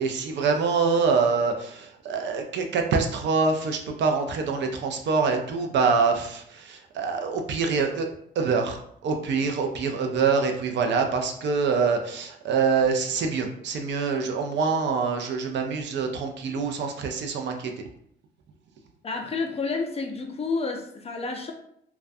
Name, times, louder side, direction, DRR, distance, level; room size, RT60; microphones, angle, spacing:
voice 1, 0.0-8.1 8.4-17.8, right 5 dB, 65° right, 4 dB, 0.4 m, -25 dB
voice 2, 19.0-21.5, left 4 dB, 30° left, 3 dB, 0.4 m, -30 dB
2.3 x 2.1 x 2.5 m, 0.71 s
cardioid pair, 90°, 20 cm